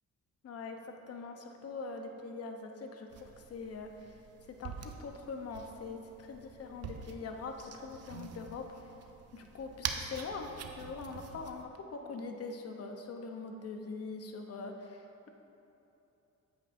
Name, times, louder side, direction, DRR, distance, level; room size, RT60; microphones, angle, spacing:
voice 1, 0.4-4.2 4.6-8.7 9.3-15.3, left 4 dB, 50° left, 4 dB, 0.9 m, -43 dB
sound 1, 3.1-11.6, right 6 dB, 55° right, 0.7 m, -45 dB
9.0 x 8.8 x 2.6 m, 2.9 s
cardioid pair, 90°, 30 cm